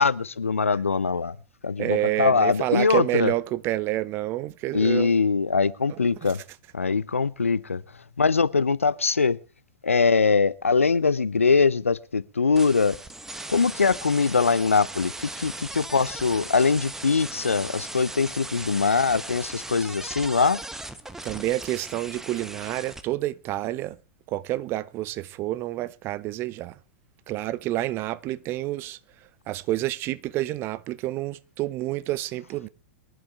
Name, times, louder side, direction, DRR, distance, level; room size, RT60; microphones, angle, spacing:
voice 1, 0.0-1.4 1.6-3.3 4.7-6.4 6.7-7.8 8.2-9.4 9.8-13.0 13.5-20.6, left 4 dB, 80° left, 0.6 m, -22 dB
voice 2, 1.8-5.1 6.0-6.3 21.2-24.0 24.3-26.8 27.3-29.0 29.5-32.7, right 16 dB, 35° right, 0.7 m, -28 dB
sound 1, 12.6-23.0, right 2 dB, 5° right, 1.0 m, -38 dB
23.5 x 11.5 x 3.4 m
figure-of-eight pair, 100°, 7 cm